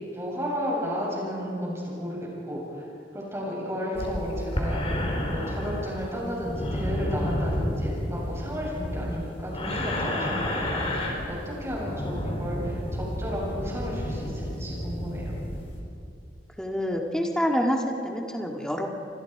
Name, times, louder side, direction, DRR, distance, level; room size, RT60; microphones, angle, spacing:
voice 1, 0.1-2.6 3.1-4.8 5.3-15.3, equal, 15° right, -4 dB, 7.9 m, -33 dB
sound 1, 4.0-15.8, left 1 dB, 35° left, 3.7 m, -31 dB
voice 2, 11.9-12.5 16.6-18.9, equal, 5° left, 1 dB, 2.1 m, -29 dB
29.5 x 24.5 x 4.9 m, 2.6 s
head